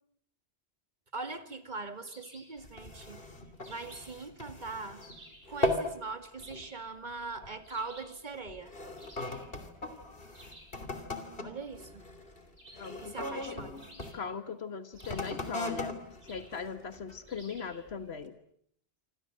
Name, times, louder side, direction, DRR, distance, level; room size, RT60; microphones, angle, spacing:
voice 1, 1.1-3.2 3.7-5.0 5.5-8.7 11.4-12.0 13.0-13.8, right 3 dB, 45° right, 9 dB, 2.1 m, -41 dB
sound 1, 2.0-2.6 3.6-4.2 5.0-5.5 6.4-6.9 7.6-8.2 9.0-9.5 10.3-10.8 12.6-13.1 13.8-14.4 14.9-15.5 16.2-16.6 17.3-17.8, right 1 dB, 70° right, 7.0 m, -54 dB
sound 2, 2.6-5.2 5.5-6.0 6.4-6.7 7.4-7.6 8.3-14.2 14.9-17.3 17.9-18.0, left 1 dB, 60° left, 3.2 m, -38 dB
voice 2, 12.7-13.6 14.1-15.9 16.3-18.3, left 5 dB, 85° left, 10 dB, 1.8 m, -39 dB
27.0 x 27.0 x 7.7 m, 0.70 s
omnidirectional pair, 1.1 m